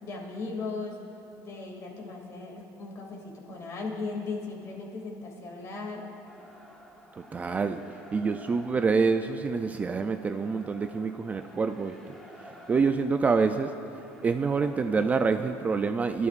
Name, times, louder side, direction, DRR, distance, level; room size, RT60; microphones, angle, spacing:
voice 1, 0.0-1.0 1.4-6.1, left 3 dB, 45° left, 0 dB, 2.4 m, -37 dB
sound 1, 6.3-15.1, equal, 5° left, 1.3 m, -51 dB
voice 2, 7.2-7.8 8.1-12.0 12.7-13.7 14.2-16.3, right 4 dB, 20° right, 8 dB, 0.3 m, -26 dB
21.5 x 12.5 x 2.5 m, 2.9 s
cardioid pair, 135°, 7 cm